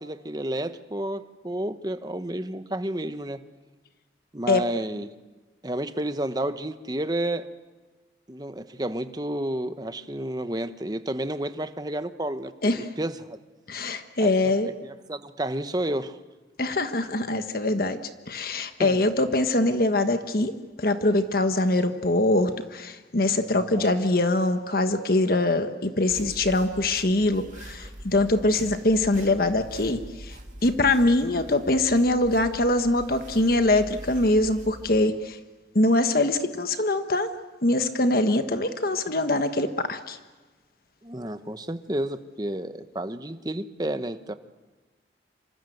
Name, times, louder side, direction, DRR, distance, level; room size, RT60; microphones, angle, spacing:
voice 1, 0.0-3.4 4.3-5.1 5.6-7.5 8.3-13.4 14.2-14.3 14.6-16.2 18.8-19.0 23.5-23.9 41.0-44.3, right 1 dB, 20° right, 10 dB, 1.1 m, -31 dB
voice 2, 13.7-14.7 16.6-18.0 18.3-20.5 20.8-30.3 30.6-35.4 35.7-37.3 37.6-40.2, left 2 dB, 55° left, 8 dB, 1.4 m, -23 dB
sound 1, 26.1-35.0, right 1 dB, 45° right, 2.7 m, -43 dB
27.0 x 25.5 x 8.0 m, 1.3 s
head